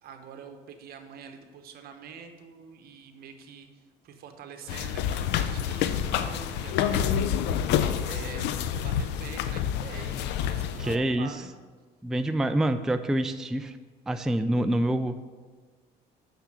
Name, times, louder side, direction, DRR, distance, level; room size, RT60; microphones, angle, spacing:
voice 1, 0.0-7.1 8.0-11.5, right 6 dB, 65° right, 6 dB, 1.1 m, -45 dB
sound 1, 4.7-11.0, left 9 dB, 90° left, 0.5 m, -28 dB
voice 2, 10.8-11.3 12.0-13.8 14.1-15.2, right 1 dB, 5° right, 9 dB, 0.3 m, -26 dB
6.7 x 6.1 x 6.5 m, 1.4 s
cardioid pair, 110°, 17 cm